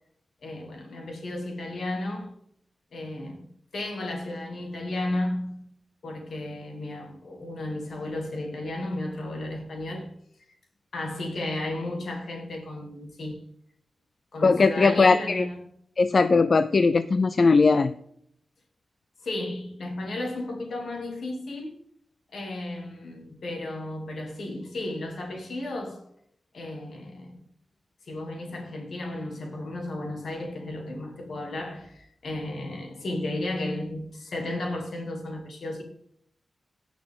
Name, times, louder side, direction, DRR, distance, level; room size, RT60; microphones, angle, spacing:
voice 1, 0.4-2.3 2.9-3.5 3.7-5.7 6.0-10.1 10.9-13.4 14.3-15.7 19.2-21.8 22.3-26.0 26.5-27.4 28.1-35.8, left 1 dB, 60° left, 2.8 m, -34 dB
voice 2, 14.4-15.4 16.0-17.9, left 4 dB, 40° left, 0.4 m, -19 dB
16.5 x 6.1 x 3.8 m
wide cardioid pair, 175°, 0 cm